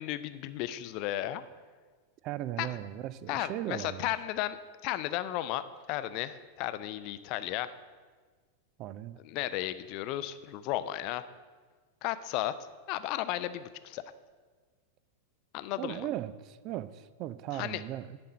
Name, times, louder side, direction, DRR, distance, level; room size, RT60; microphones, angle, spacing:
voice 1, 0.0-1.4 2.6-2.7 3.3-4.6 4.8-7.7 9.2-11.2 12.0-12.5 12.9-14.0 15.5-16.0 17.5-17.8, left 14 dB, 45° left, 13 dB, 0.4 m, -34 dB
voice 2, 2.2-4.1 8.8-9.2 15.8-18.2, right 13 dB, 40° right, 16 dB, 0.4 m, -37 dB
10.5 x 4.3 x 6.3 m, 1.5 s
figure-of-eight pair, 90°, 0 cm